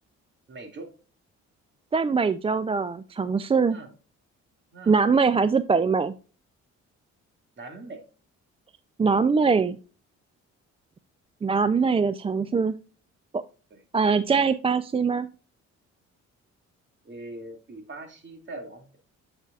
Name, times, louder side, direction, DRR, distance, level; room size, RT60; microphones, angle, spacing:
voice 1, 0.5-0.9 3.7-3.9 4.7-5.0 7.6-8.0 13.7-13.8 17.0-19.0, right 2 dB, 40° right, 4 dB, 2.4 m, -41 dB
voice 2, 1.9-3.8 4.9-6.1 9.0-9.8 11.4-12.7 13.3-13.4 13.9-15.3, right 5 dB, 20° right, 13 dB, 0.4 m, -22 dB
7.9 x 6.5 x 2.4 m, 0.36 s
cardioid pair, 90°, 30 cm